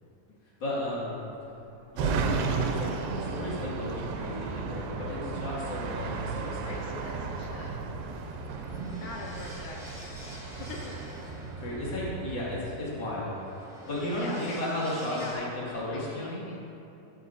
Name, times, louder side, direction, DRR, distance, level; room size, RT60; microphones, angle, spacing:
voice 1, 0.6-1.3 1.9-6.9 11.5-13.4 13.9-16.5, left 1 dB, 35° left, -7 dB, 2.2 m, -34 dB
Animal, 0.9-9.3, right 1 dB, 30° right, 1.6 m, -54 dB
sound 1, 1.2-15.3, equal, 5° right, 0.7 m, -50 dB
sound 2, 2.0-12.6, right 5 dB, 85° right, 2.5 m, -34 dB
voice 2, 6.6-7.8 8.9-10.4 10.7-10.9 14.1-14.6 15.1-15.5 15.9-16.6, left 3 dB, 80° left, -1 dB, 1.7 m, -43 dB
12.0 x 9.5 x 2.6 m, 2.9 s
omnidirectional pair, 4.1 m